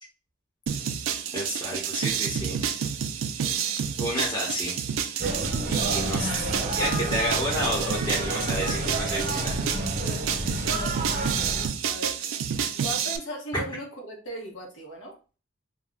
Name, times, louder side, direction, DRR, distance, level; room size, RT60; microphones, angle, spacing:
sound 1, 0.7-13.2, right 8 dB, 85° right, 0.4 m, -29 dB
voice 1, 1.3-2.6 4.0-4.8 5.1-5.3 5.6-6.5 6.7-9.6 13.5-13.6, equal, 20° left, -5 dB, 0.9 m, -30 dB
sound 2, 5.2-11.7, right 1 dB, 40° right, 0.6 m, -30 dB
voice 2, 6.6-6.9 10.6-12.2 12.8-15.1, equal, 80° left, 0 dB, 1.0 m, -38 dB
2.6 x 2.2 x 3.4 m, 0.35 s
head